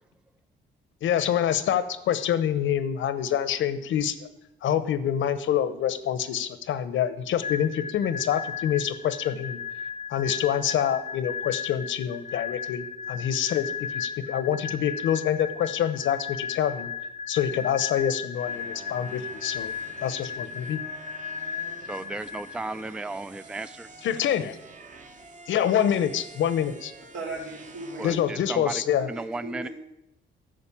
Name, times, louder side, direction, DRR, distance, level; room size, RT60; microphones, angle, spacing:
voice 1, 1.0-4.2 4.6-9.6 10.1-16.9 17.3-19.7 20.0-20.8 24.0-24.6 25.5-26.9 28.0-29.1, left 9 dB, 75° left, 14 dB, 0.9 m, -26 dB
sound 1, 7.4-23.0, left 6 dB, 35° left, 0.6 m, -36 dB
sound 2, 18.3-28.2, right 4 dB, 40° right, 1.3 m, -48 dB
voice 2, 21.9-23.9 28.0-28.8 29.1-29.7, right 2 dB, 5° right, 14 dB, 0.4 m, -34 dB
voice 3, 27.1-28.5 28.9-29.7, right 2 dB, 80° right, -2 dB, 3.9 m, -38 dB
10.5 x 6.5 x 8.5 m, 0.89 s
cardioid pair, 90°, 20 cm